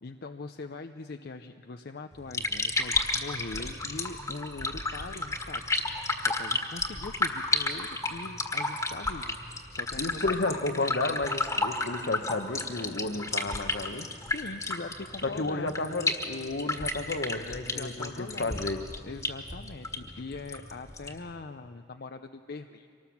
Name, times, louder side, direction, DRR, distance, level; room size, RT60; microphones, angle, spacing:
voice 1, 0.0-10.9 14.3-15.7 17.6-18.8 19.0-22.9, left 3 dB, 60° left, 7 dB, 0.6 m, -42 dB
sound 1, 2.1-21.3, left 2 dB, 20° left, 1.7 m, -32 dB
voice 2, 10.0-14.1 15.2-18.8, left 2 dB, 75° left, 8 dB, 1.2 m, -32 dB
25.0 x 19.0 x 7.2 m, 2.6 s
head